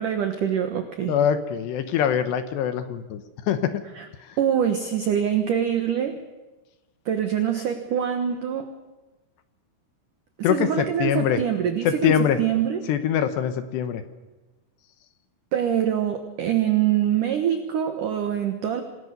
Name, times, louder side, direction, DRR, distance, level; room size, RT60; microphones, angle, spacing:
voice 1, 0.0-1.2 4.0-4.1 4.4-6.2 7.1-8.7 10.4-12.8 15.5-18.8, right 9 dB, 75° right, 6 dB, 1.9 m, -24 dB
voice 2, 1.1-3.8 4.2-4.4 10.4-11.4 11.8-12.4 12.9-14.0, left 9 dB, 70° left, 10 dB, 2.8 m, -23 dB
27.5 x 19.5 x 6.7 m, 1.1 s
omnidirectional pair, 5.9 m